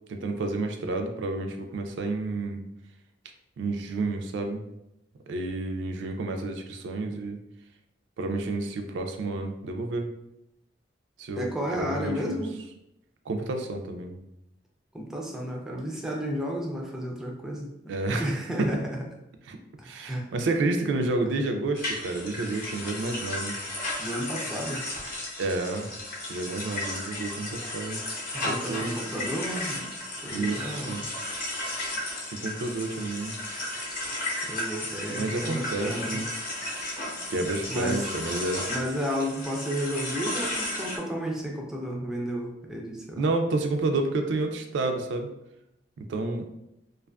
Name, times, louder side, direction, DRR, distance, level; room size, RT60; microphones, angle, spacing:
voice 1, 0.1-2.6 3.6-4.6 5.3-7.4 8.2-10.1 11.2-11.5 11.8-12.4 13.3-14.2 17.9-18.8 19.5-19.6 19.8-23.5 25.4-25.9 26.3-28.0 28.4-28.9 30.3-31.0 32.3-33.3 35.1-36.3 37.3-38.7 43.2-45.3 46.1-46.5, right 2 dB, 85° right, 5 dB, 0.3 m, -30 dB
voice 2, 11.4-12.6 14.9-17.7 18.2-19.0 19.8-20.3 24.0-24.8 28.5-29.9 30.2-31.0 34.4-36.2 37.7-38.1 38.7-43.3, equal, 5° right, -1 dB, 0.3 m, -32 dB
sound 1, 21.8-41.0, left 1 dB, 50° left, 0.6 m, -34 dB
2.4 x 2.3 x 2.2 m, 0.86 s
head